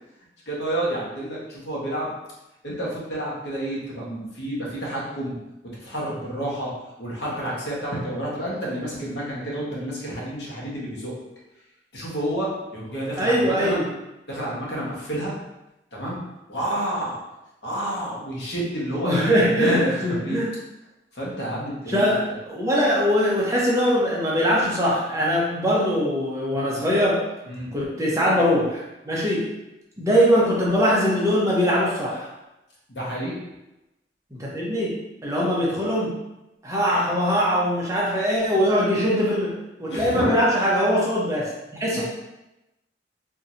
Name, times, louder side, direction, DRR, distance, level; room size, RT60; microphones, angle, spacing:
voice 1, 0.5-2.1 2.6-5.4 5.8-6.7 7.0-11.1 11.9-13.8 14.3-15.3 15.9-16.2 16.5-17.2 17.6-20.4 21.1-22.1 27.5-27.7 32.9-33.4 39.9-40.4 41.9-42.0, right 1 dB, 70° left, -5 dB, 1.2 m, -29 dB
voice 2, 13.2-13.9 19.0-20.5 21.9-27.2 27.7-29.5 30.0-32.3 34.3-35.0 35.2-36.1 36.6-42.0, equal, 15° right, -5 dB, 0.8 m, -22 dB
4.5 x 2.8 x 2.6 m, 0.94 s
head